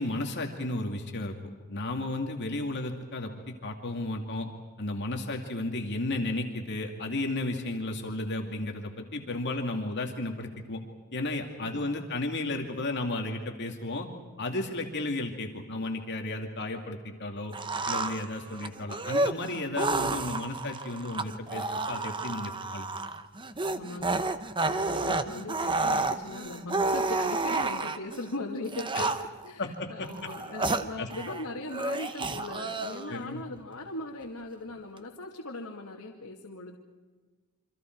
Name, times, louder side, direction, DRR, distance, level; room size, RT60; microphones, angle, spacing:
voice 1, 0.0-1.3 1.7-4.5 4.8-10.8 11.1-14.1 14.4-17.5 17.9-22.9 28.9-29.1 29.6-30.1 30.6-31.1 33.1-33.4, left 2 dB, 50° left, 3 dB, 2.5 m, -33 dB
voice 2, 11.6-12.1 23.7-24.3 24.7-36.8, left 2 dB, 70° left, -2 dB, 2.4 m, -39 dB
sound 1, 17.5-28.2 28.7-29.5 30.0-31.4 31.7-33.2, right 3 dB, 20° right, 0.9 m, -31 dB
28.5 x 25.5 x 4.7 m, 1.4 s
head